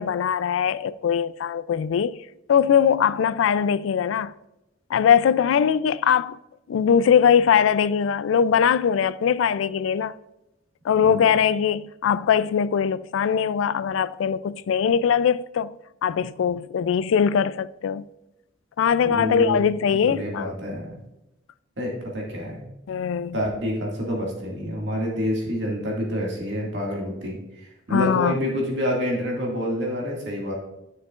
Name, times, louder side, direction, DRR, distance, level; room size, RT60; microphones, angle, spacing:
voice 1, 0.0-2.2 2.5-4.3 4.9-6.4 6.7-10.1 10.8-15.7 16.0-18.0 18.8-20.5 22.9-23.3 27.9-28.4, left 7 dB, 80° left, 0.3 m, -21 dB
voice 2, 19.0-20.9 21.8-22.7 23.3-30.5, equal, 65° right, 2.0 m, -28 dB
11.0 x 6.5 x 2.4 m
head